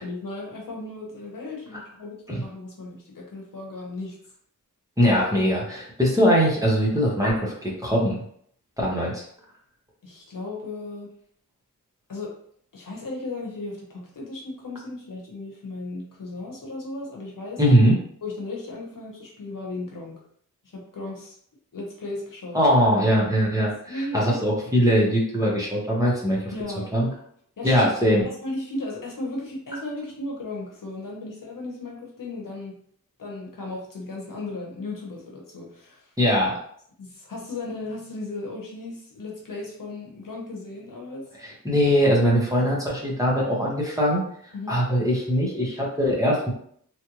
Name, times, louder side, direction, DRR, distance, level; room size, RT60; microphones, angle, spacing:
voice 1, 0.0-4.2 10.0-11.1 12.1-12.3 12.7-17.6 18.2-20.2 20.6-21.4 21.7-22.6 23.6-24.7 26.5-26.9 27.6-27.9 28.2-32.7 33.2-36.1 37.0-41.2 44.5-44.8, left 2 dB, 70° left, -2 dB, 1.0 m, -35 dB
voice 2, 5.0-8.2 8.8-9.2 17.6-18.0 22.5-23.7 24.1-26.5 26.9-27.1 27.6-28.3 36.2-36.6 41.6-44.2 44.7-46.5, equal, 10° right, -4 dB, 1.2 m, -21 dB
3.2 x 2.5 x 3.0 m, 0.63 s
wide cardioid pair, 60°, 33 cm